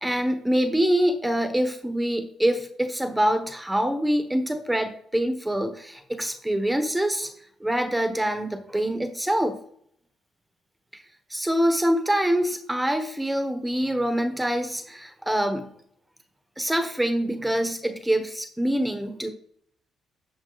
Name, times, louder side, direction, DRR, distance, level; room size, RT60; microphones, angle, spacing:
voice 1, 0.0-7.3 7.6-9.6 10.9-11.0 11.3-15.7 16.6-19.3, right 1 dB, 5° right, 7 dB, 1.1 m, -25 dB
11.5 x 5.5 x 4.0 m, 0.66 s
cardioid pair, 90°, 0 cm